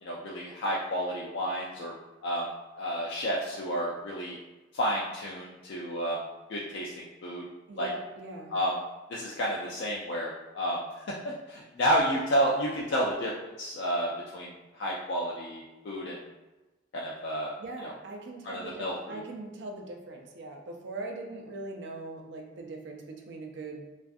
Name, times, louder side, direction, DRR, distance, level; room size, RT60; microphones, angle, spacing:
voice 1, 0.0-1.9 2.2-2.5 2.8-4.4 4.7-6.2 6.5-7.5 7.8-7.9 8.5-8.7 9.1-13.3 13.6-16.2 16.9-17.5 17.8-17.9 18.4-19.2, equal, 60° left, -4 dB, 0.3 m, -31 dB
voice 2, 7.7-8.6 17.6-23.9, right 2 dB, 65° right, 2 dB, 0.4 m, -41 dB
2.4 x 2.3 x 2.5 m, 1.1 s
head